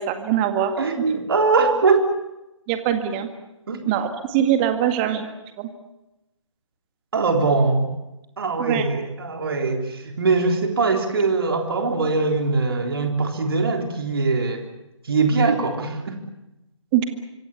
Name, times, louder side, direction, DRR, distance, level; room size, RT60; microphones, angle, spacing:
voice 1, 0.0-0.8 1.4-1.5 2.7-3.3 3.9-5.3 5.6-5.7 8.6-8.8 16.9-17.0, right 10 dB, 20° right, 7 dB, 2.0 m, -22 dB
voice 2, 0.8-2.1 3.7-3.8 7.1-7.9 8.4-14.6 15.0-16.2, right 4 dB, 50° right, 4 dB, 3.8 m, -21 dB
25.0 x 24.5 x 7.3 m, 0.95 s
figure-of-eight pair, 140°, 16 cm